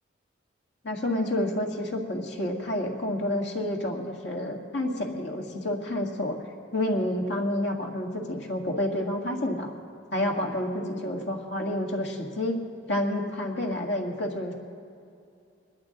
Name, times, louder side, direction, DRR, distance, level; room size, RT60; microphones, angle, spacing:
voice 1, 0.8-6.4 6.7-9.7 10.1-12.6 12.9-14.5, left 1 dB, 65° left, 1 dB, 1.8 m, -29 dB
23.0 x 11.0 x 3.9 m, 2.6 s
head